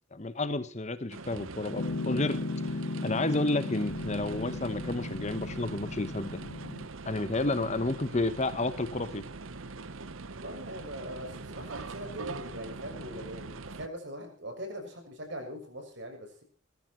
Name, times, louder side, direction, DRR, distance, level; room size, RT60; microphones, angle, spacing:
voice 1, 0.1-2.4 3.0-6.4 7.0-9.2, left 2 dB, 35° left, 13 dB, 1.1 m, -31 dB
sound 1, 1.1-13.9, right 3 dB, 75° right, 1.0 m, -42 dB
Piano, 1.8-6.9, left 2 dB, 60° left, 1.0 m, -36 dB
voice 2, 10.4-16.4, equal, 55° right, 5 dB, 6.7 m, -41 dB
20.5 x 14.5 x 4.5 m, 0.39 s
head